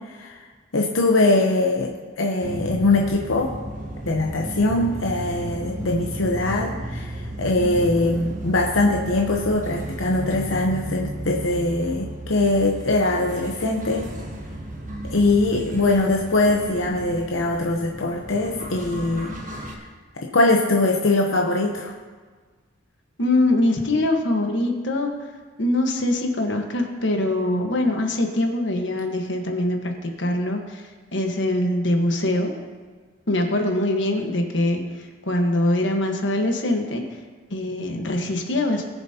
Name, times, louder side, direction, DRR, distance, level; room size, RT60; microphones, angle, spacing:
voice 1, 0.1-0.4 0.7-3.5 4.0-14.1 15.0-19.3 19.6-19.9 20.1-22.0, left 2 dB, 90° left, 1 dB, 0.9 m, -22 dB
sound 1, 2.4-19.7, right 1 dB, 40° right, 1.2 m, -34 dB
voice 2, 23.2-25.1 25.6-30.8 31.1-32.5 33.3-34.8 35.2-37.1 37.5-38.9, left 1 dB, 65° left, 3 dB, 1.3 m, -23 dB
20.5 x 7.2 x 2.9 m, 1.5 s
head